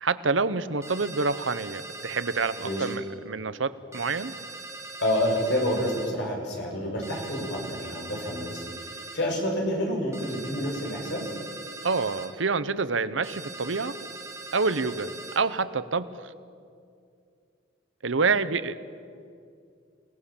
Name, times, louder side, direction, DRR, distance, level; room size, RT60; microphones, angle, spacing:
voice 1, 0.0-4.3 11.8-14.0 14.5-15.1 15.3-16.3 18.0-18.7, right 4 dB, 80° right, 14 dB, 0.9 m, -27 dB
sound 1, 0.8-3.0 3.9-6.1 7.0-9.2 10.1-12.3 13.2-15.4, right 2 dB, 15° right, 2.9 m, -41 dB
voice 2, 5.0-8.7 9.1-11.4, left 1 dB, 65° left, 0 dB, 6.1 m, -28 dB
28.5 x 18.5 x 7.2 m, 2.3 s
head